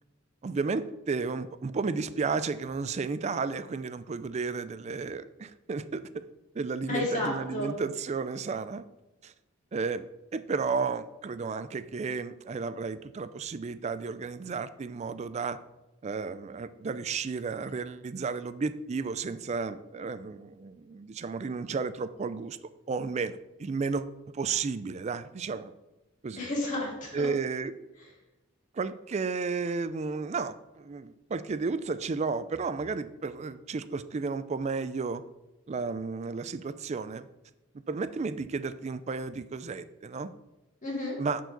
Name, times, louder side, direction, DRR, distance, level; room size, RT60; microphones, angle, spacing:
voice 1, 0.4-6.2 6.5-8.8 9.2-9.3 9.7-10.1 10.3-15.6 16.0-22.6 22.9-24.1 24.3-25.7 26.2-26.5 27.1-27.7 28.8-35.2 35.7-37.3 37.9-40.3 41.2-41.4, right 4 dB, 35° right, 13 dB, 0.3 m, -33 dB
voice 2, 6.9-7.7 26.4-27.3 40.8-41.2, left 2 dB, 40° left, -3 dB, 2.5 m, -31 dB
10.0 x 4.7 x 3.9 m, 1.0 s
head